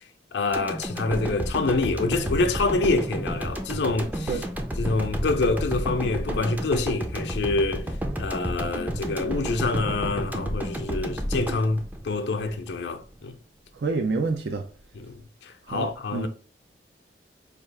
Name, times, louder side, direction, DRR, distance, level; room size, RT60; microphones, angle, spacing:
voice 1, 0.3-4.3 4.8-7.9 8.2-13.4 15.0-16.3, left 3 dB, 70° left, 0.5 m, -26 dB
sound 1, 0.5-12.8 13.1-13.2, equal, 10° right, 0.4 m, -31 dB
voice 2, 13.7-14.7 15.6-16.3, right 4 dB, 65° right, 0.5 m, -28 dB
4.7 x 2.4 x 3.2 m
head